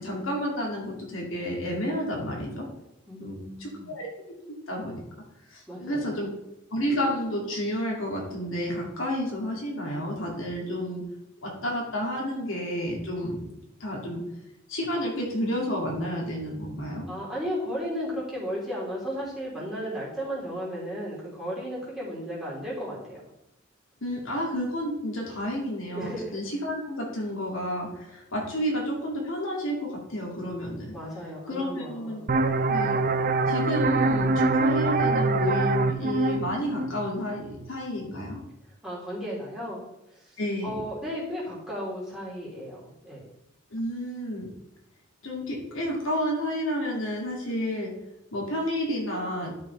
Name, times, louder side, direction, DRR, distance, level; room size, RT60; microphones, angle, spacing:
voice 1, 0.0-2.7 3.2-4.1 4.7-5.0 5.5-6.3 6.7-11.0 11.4-14.2 14.7-17.1 24.0-30.9 31.5-32.2 32.7-33.0 33.5-38.4 40.4-40.8 43.7-44.5 45.2-47.9 48.3-49.5, equal, 80° left, -2 dB, 2.4 m, -31 dB
voice 2, 3.1-3.9 5.7-6.2 17.1-23.2 25.9-26.4 30.9-32.2 38.8-39.8 40.2-40.4 40.6-43.2, equal, ahead, -8 dB, 3.4 m, -34 dB
sound 1, 32.3-37.7, right 3 dB, 45° right, 0.5 m, -24 dB
12.0 x 6.1 x 3.3 m, 0.88 s
head